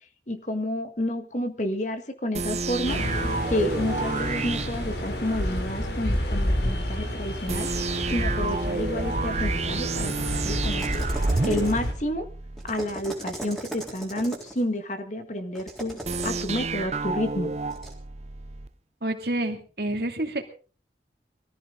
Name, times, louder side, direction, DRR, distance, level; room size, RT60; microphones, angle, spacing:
voice 1, 0.3-3.0 3.5-7.7 8.1-11.0 11.4-12.3 12.6-17.5, left 1 dB, 45° left, 8 dB, 1.8 m, -30 dB
sound 1, 2.3-5.6 7.5-12.7 16.0-18.7, right 3 dB, 40° right, 0.7 m, -30 dB
sound 2, 2.9-11.9, equal, 70° left, 3.4 m, -29 dB
sound 3, 10.6-12.0 12.6-14.6 15.6-16.4 17.7-17.9, right 1 dB, ahead, 3.7 m, -38 dB
voice 2, 19.0-20.4, right 1 dB, 60° right, 4 dB, 2.7 m, -28 dB
22.5 x 14.5 x 3.9 m, 0.37 s
head